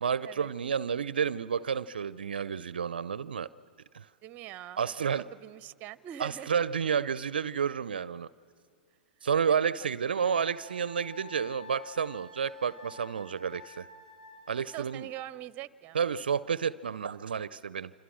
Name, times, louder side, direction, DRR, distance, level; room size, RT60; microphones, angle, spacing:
voice 1, 0.0-3.5 3.9-4.1 4.8-5.2 6.2-8.3 9.2-13.9 14.5-15.1 15.9-17.9, right 7 dB, 75° right, 18 dB, 0.5 m, -30 dB
voice 2, 4.2-4.8 5.4-6.6 9.5-9.9 14.6-16.0, right 13 dB, 35° right, 18 dB, 0.7 m, -43 dB
Wind instrument woodwind instrument, 10.1-15.0, left 2 dB, 55° left, 7.6 m, -50 dB
27.0 x 27.0 x 6.2 m, 2.1 s
figure-of-eight pair, 105°, 5 cm